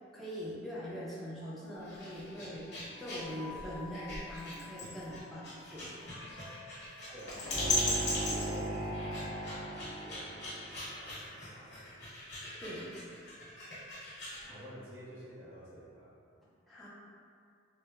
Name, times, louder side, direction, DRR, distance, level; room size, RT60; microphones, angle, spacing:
voice 1, 0.1-2.7 3.0-5.9 12.6-12.9 16.7-16.9, equal, ahead, -10 dB, 0.4 m, -42 dB
sound 1, 1.4-12.3, left 5 dB, 85° left, 0.5 m, -53 dB
sound 2, 1.8-14.5, left 2 dB, 60° left, 0.9 m, -39 dB
voice 2, 7.1-12.1 14.5-16.1, equal, 80° right, -12 dB, 0.9 m, -50 dB
sound 3, 7.5-11.0, right 1 dB, 45° right, 1.1 m, -38 dB
2.9 x 2.0 x 2.2 m, 2.3 s
head